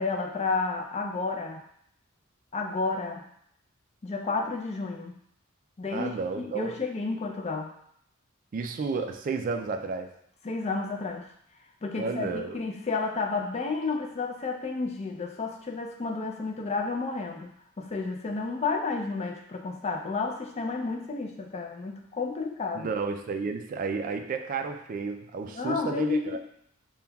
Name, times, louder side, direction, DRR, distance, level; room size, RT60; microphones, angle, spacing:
voice 1, 0.0-1.6 2.5-3.3 4.0-5.2 5.8-7.7 10.4-11.3 11.8-22.9 25.5-26.4, left 4 dB, 30° left, 2 dB, 0.4 m, -31 dB
voice 2, 5.9-6.7 8.5-10.1 12.0-12.6 22.7-26.4, right 4 dB, 40° right, 5 dB, 0.3 m, -32 dB
5.4 x 2.2 x 2.3 m, 0.70 s
head